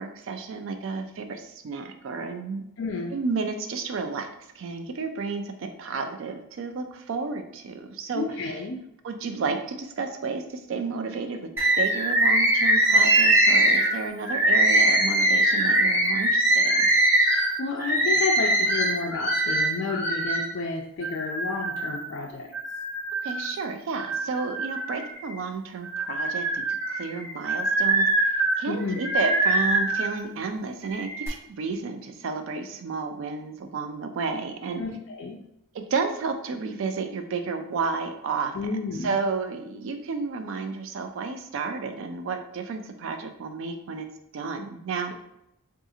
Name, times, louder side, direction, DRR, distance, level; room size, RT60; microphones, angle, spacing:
voice 1, 0.0-2.7 3.1-4.3 4.6-8.5 9.0-11.5 11.8-16.9 23.2-34.8 35.7-38.7 39.0-44.1 44.3-45.1, right 4 dB, 60° right, 6 dB, 0.3 m, -32 dB
voice 2, 2.8-3.2 8.1-8.8 17.3-22.5 28.7-29.0 34.8-35.4 38.5-39.2, left 4 dB, 55° left, 0 dB, 0.3 m, -31 dB
Bird, 11.6-20.5 21.0-22.0 22.5-23.5 24.0-25.4 25.8-30.1 30.8-31.3, right 1 dB, 10° right, 0.6 m, -22 dB
3.7 x 2.4 x 2.7 m, 0.80 s
head